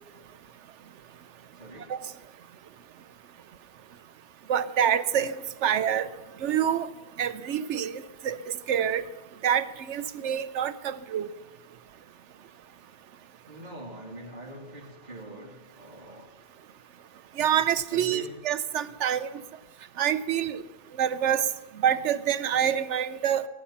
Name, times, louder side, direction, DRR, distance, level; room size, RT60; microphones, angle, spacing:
voice 1, 1.5-2.0 13.5-16.4 17.9-18.4, right 1 dB, 40° right, 2.7 m, -44 dB
voice 2, 4.5-5.4 5.6-6.1 6.4-6.9 7.2-9.0 9.4-11.3 17.4-19.4 20.0-20.6 21.0-21.5 21.8-23.5, right 9 dB, 85° right, 1.1 m, -26 dB
23.0 x 9.1 x 5.7 m
omnidirectional pair, 1.2 m